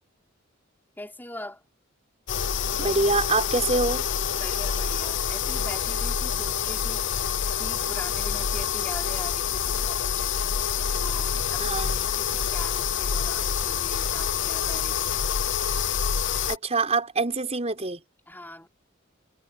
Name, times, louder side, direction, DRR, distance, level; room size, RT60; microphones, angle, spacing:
voice 1, 1.0-1.6 4.3-10.3 10.9-15.2 18.3-18.7, left 1 dB, 10° left, 5.4 m, -42 dB
sound 1, 2.3-16.6, left 7 dB, 60° left, 0.8 m, -27 dB
voice 2, 2.8-4.1 11.6-12.1 16.5-18.0, right 3 dB, 30° right, 5.6 m, -25 dB
head